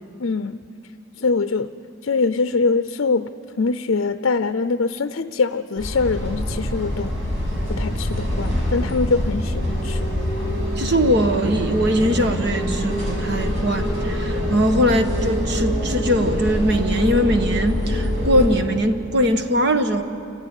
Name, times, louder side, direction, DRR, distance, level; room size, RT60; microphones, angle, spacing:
voice 1, 0.2-0.6 1.2-1.7 2.0-3.3 3.6-7.1 7.7-10.1, left 4 dB, 70° left, 10 dB, 0.6 m, -23 dB
sound 1, 5.8-18.5, equal, 70° right, 6.5 m, -25 dB
voice 2, 10.8-20.0, equal, 55° right, 7 dB, 1.4 m, -21 dB
29.0 x 15.0 x 9.1 m, 2.5 s
head